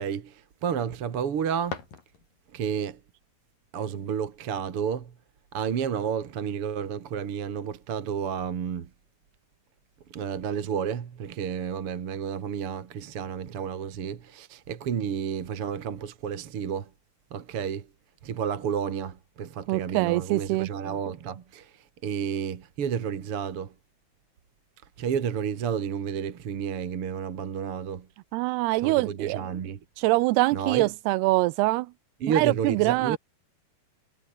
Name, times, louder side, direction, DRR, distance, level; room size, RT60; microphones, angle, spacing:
voice 1, 0.0-1.8 2.5-3.0 3.7-5.1 5.5-8.9 10.1-16.9 17.3-17.9 18.2-23.7 25.0-28.1 28.8-29.8 30.5-30.9 32.2-33.2, right 7 dB, 45° right, 2.1 m, -31 dB
sound 1, 1.6-2.7, left 6 dB, 60° left, 5.4 m, -42 dB
voice 2, 19.7-20.7 28.3-29.4 30.0-31.9 32.3-33.2, right 20 dB, 90° right, 2.7 m, -24 dB
omnidirectional pair, 4.6 m